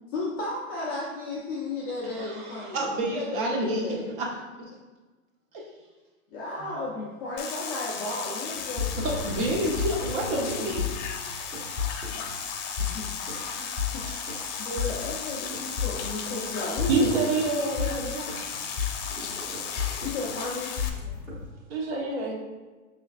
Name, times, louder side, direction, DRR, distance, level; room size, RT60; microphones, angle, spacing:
voice 1, 0.1-4.2 6.3-9.2 12.8-13.0 13.6-14.0 14.6-17.1 20.0-21.1, left 2 dB, 20° left, -6 dB, 0.4 m, -34 dB
voice 2, 2.1-4.3 6.6-6.7 8.9-10.8 12.8-12.9, right 1 dB, 40° right, -1 dB, 1.0 m, -29 dB
sound 1, 7.4-20.9, left 6 dB, 60° left, 0.8 m, -35 dB
sound 2, 8.5-21.5, left 6 dB, 5° right, 0.7 m, -33 dB
voice 3, 16.9-18.5 21.7-22.3, right 3 dB, 60° right, -1 dB, 1.2 m, -26 dB
5.6 x 3.2 x 2.4 m, 1.3 s
hypercardioid pair, 150°, 40 cm